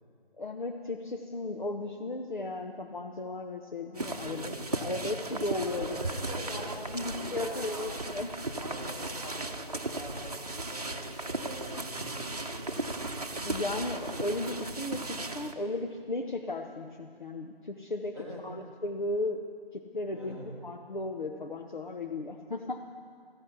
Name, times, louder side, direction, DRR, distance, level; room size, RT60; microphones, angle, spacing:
voice 1, 0.4-4.5 4.8-6.0 6.5-8.3 13.4-18.2 18.4-19.4 19.7-22.8, left 2 dB, 50° left, 4 dB, 1.0 m, -35 dB
sound 1, 3.9-15.5, right 2 dB, 40° right, 0.9 m, -36 dB
voice 2, 4.1-5.3 5.6-8.0 8.6-12.9 18.1-18.4 20.1-20.5, right 1 dB, 25° left, -4 dB, 3.0 m, -45 dB
14.5 x 11.5 x 8.2 m, 2.2 s
figure-of-eight pair, 165°, 30 cm